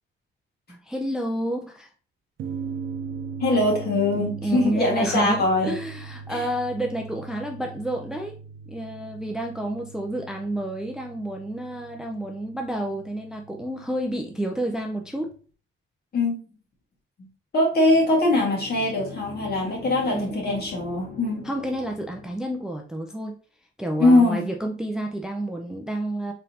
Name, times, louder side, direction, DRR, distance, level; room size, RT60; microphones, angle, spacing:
voice 1, 0.7-1.9 4.4-8.4 8.7-15.4 20.1-20.4 21.4-23.4 23.8-26.3, right 1 dB, 5° right, 2 dB, 0.4 m, -30 dB
sound 1, 2.4-15.3, right 5 dB, 70° right, 0.6 m, -40 dB
voice 2, 3.4-5.7 6.3-6.4 16.1-16.4 17.5-21.4 24.0-24.5, left 2 dB, 50° left, -1 dB, 1.7 m, -22 dB
sound 2, 17.7-22.6, left 3 dB, 80° left, 1.8 m, -42 dB
3.9 x 3.8 x 2.7 m, 0.39 s
cardioid pair, 145°, 21 cm